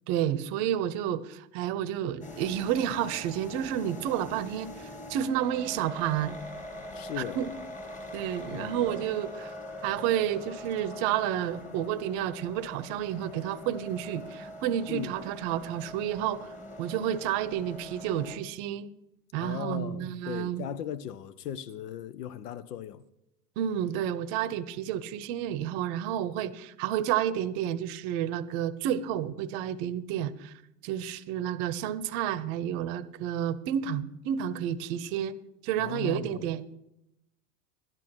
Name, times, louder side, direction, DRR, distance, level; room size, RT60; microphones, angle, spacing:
voice 1, 0.1-6.4 7.2-7.5 8.1-9.5 9.8-18.9 19.3-20.6 23.6-30.5 30.8-35.4 35.6-36.6, right 10 dB, 45° right, 0.8 m, -30 dB
sound 1, 2.2-18.4, left 1 dB, 15° left, 1.7 m, -43 dB
voice 2, 6.9-7.4 8.5-9.0 14.9-15.1 19.4-23.0 35.8-36.4, left 9 dB, 70° left, 0.8 m, -37 dB
12.5 x 10.5 x 4.5 m
hypercardioid pair, 90°, 48 cm